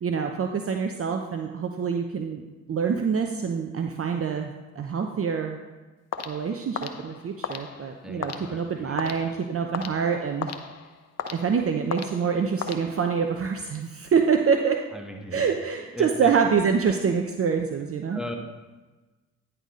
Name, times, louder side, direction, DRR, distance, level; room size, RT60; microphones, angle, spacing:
voice 1, 0.0-2.4 2.7-5.6 6.3-10.5 11.3-14.8 15.3-18.2, right 6 dB, 40° right, 4 dB, 0.7 m, -26 dB
sound 1, 6.1-13.4, left 6 dB, 45° left, 0.8 m, -37 dB
voice 2, 8.0-9.3 9.7-10.0 14.9-15.4 15.8-16.3 18.1-18.3, left 1 dB, ahead, 2 dB, 1.6 m, -38 dB
10.0 x 4.2 x 5.1 m, 1.2 s
hypercardioid pair, 40°, 36 cm